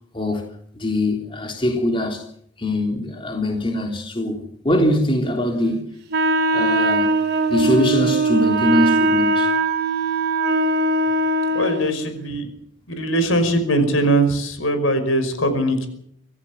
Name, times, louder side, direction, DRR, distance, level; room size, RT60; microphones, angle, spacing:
voice 1, 0.1-0.5 0.7-2.3 2.6-5.9 6.5-7.1 7.5-9.5, left 1 dB, 25° left, 3.5 m, -22 dB
Wind instrument woodwind instrument, 6.1-12.0, right 2 dB, 55° right, 2.9 m, -20 dB
voice 2, 11.5-12.5 12.9-15.9, right 1 dB, 90° left, 5.4 m, -20 dB
24.5 x 15.5 x 7.4 m
head